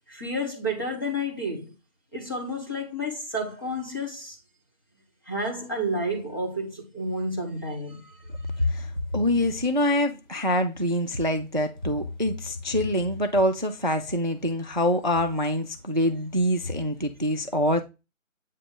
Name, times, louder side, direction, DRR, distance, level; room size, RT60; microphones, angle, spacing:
voice 1, 0.1-1.7 2.1-4.4 5.2-8.1, equal, 15° left, 0.9 m, -30 dB
voice 2, 8.6-17.8, left 1 dB, 35° right, 0.4 m, -25 dB
8.4 x 2.9 x 5.2 m
figure-of-eight pair, 170°, 41 cm